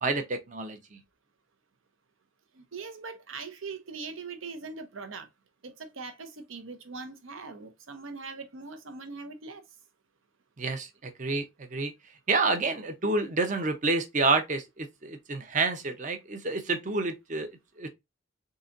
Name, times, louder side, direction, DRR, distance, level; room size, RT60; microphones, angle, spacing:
voice 1, 0.0-1.0 10.6-11.9 12.3-17.5 17.8-17.9, right 3 dB, 35° right, 0.6 m, -29 dB
voice 2, 2.5-5.3 5.6-9.6, right 4 dB, 75° right, 0.7 m, -41 dB
3.8 x 2.8 x 2.5 m
head